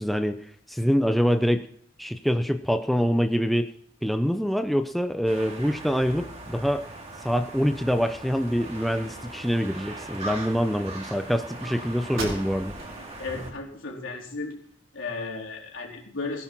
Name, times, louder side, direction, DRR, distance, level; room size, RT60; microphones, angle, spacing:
voice 1, 0.0-1.6 2.0-3.7 4.0-6.9 7.2-12.8, equal, ahead, 7 dB, 0.7 m, -25 dB
sound 1, 5.3-13.5, right 2 dB, 35° right, 3.0 m, -40 dB
sound 2, 12.2-13.0 13.4-13.5 14.1-15.0, right 2 dB, 75° right, 4.7 m, -37 dB
voice 2, 13.2-14.5 14.9-16.4, left 3 dB, 70° left, 0 dB, 4.1 m, -34 dB
18.0 x 10.0 x 6.1 m, 0.64 s
head